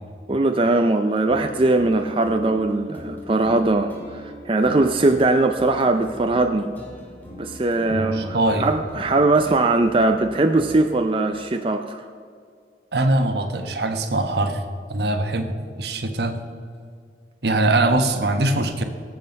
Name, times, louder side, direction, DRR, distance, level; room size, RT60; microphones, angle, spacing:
voice 1, 0.3-6.7 7.4-12.0, right 2 dB, 30° right, 5 dB, 0.5 m, -20 dB
sound 1, 1.1-11.1, left 1 dB, 10° left, 2.1 m, -40 dB
voice 2, 7.9-8.7 12.9-14.6 14.9-16.4 17.4-18.8, right 2 dB, 65° right, 6 dB, 1.2 m, -22 dB
19.0 x 7.6 x 5.3 m, 2.2 s
head